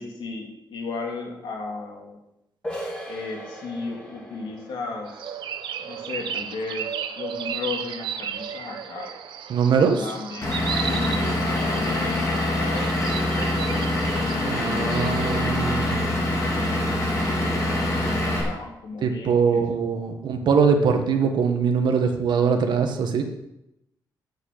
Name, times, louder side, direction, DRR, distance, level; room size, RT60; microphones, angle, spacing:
voice 1, 0.0-2.2 3.1-5.3 5.8-9.1 10.0-15.6 16.5-19.6 20.0-20.2, left 4 dB, 90° left, 1 dB, 2.8 m, -36 dB
sound 1, 2.6-8.1, equal, 15° left, 3.0 m, -40 dB
sound 2, 5.1-15.4, right 8 dB, 90° right, 0.9 m, -34 dB
voice 2, 9.5-10.1 14.5-16.2 19.0-23.2, right 6 dB, 70° right, 4 dB, 1.6 m, -22 dB
Vehicle / Engine, 10.4-18.4, left 1 dB, 40° left, 3.9 m, -24 dB
8.3 x 7.7 x 8.6 m, 0.86 s
wide cardioid pair, 155°, 8 cm